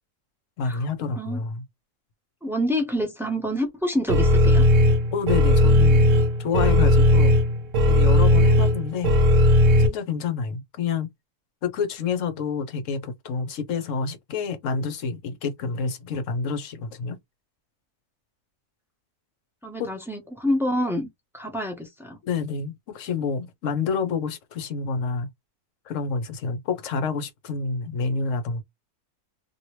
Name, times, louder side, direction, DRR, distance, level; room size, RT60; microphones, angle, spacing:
voice 1, 0.6-1.6 5.1-6.1 6.4-7.3 7.8-9.2 9.8-11.1 11.6-17.2 19.8-19.9 22.2-25.3 25.9-28.6, left 5 dB, 60° left, 1.0 m, -28 dB
voice 2, 2.4-4.7 19.6-22.2, equal, 5° right, 0.5 m, -27 dB
sound 1, 4.1-9.9, left 1 dB, 60° right, 1.1 m, -17 dB
2.9 x 2.7 x 3.0 m
omnidirectional pair, 1.6 m